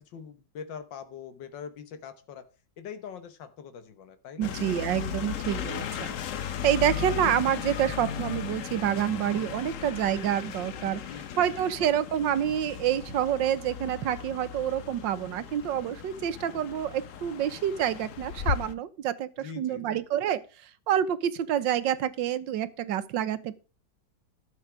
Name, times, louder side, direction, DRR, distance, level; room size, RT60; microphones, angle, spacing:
voice 1, 0.0-2.4 2.8-4.5 11.1-11.7 19.4-20.0, left 7 dB, 80° left, 1.7 m, -43 dB
sound 1, 4.4-18.7, left 9 dB, 55° left, 1.0 m, -36 dB
voice 2, 4.4-6.2 6.6-11.0 11.4-23.6, right 10 dB, 85° right, 1.6 m, -28 dB
13.0 x 7.0 x 4.8 m
omnidirectional pair, 2.0 m